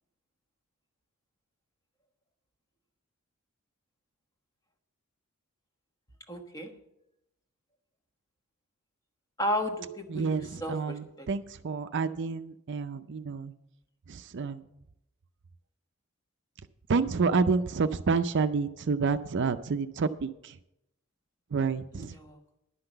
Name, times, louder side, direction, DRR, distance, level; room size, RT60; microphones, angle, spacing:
voice 1, 6.3-6.7 9.4-11.3 21.9-22.4, equal, 15° left, 4 dB, 1.3 m, -34 dB
voice 2, 10.1-13.5 14.1-14.6 16.9-20.6 21.5-22.2, right 4 dB, 60° right, 11 dB, 0.5 m, -29 dB
11.0 x 5.8 x 7.9 m, 0.83 s
head